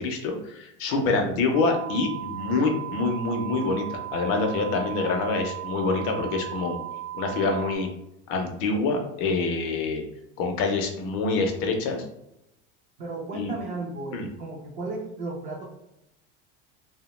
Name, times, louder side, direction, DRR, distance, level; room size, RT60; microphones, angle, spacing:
voice 1, 0.0-6.8 7.1-7.9 8.3-10.0 10.4-12.1 13.3-13.5 14.1-14.3, left 3 dB, 45° left, 3 dB, 0.4 m, -26 dB
voice 2, 0.9-1.4 13.0-15.6, right 2 dB, 25° right, -1 dB, 0.3 m, -34 dB
sound 1, 1.5-7.8, right 13 dB, 55° right, 0.8 m, -36 dB
2.6 x 2.1 x 3.0 m, 0.85 s
cardioid pair, 170°, 31 cm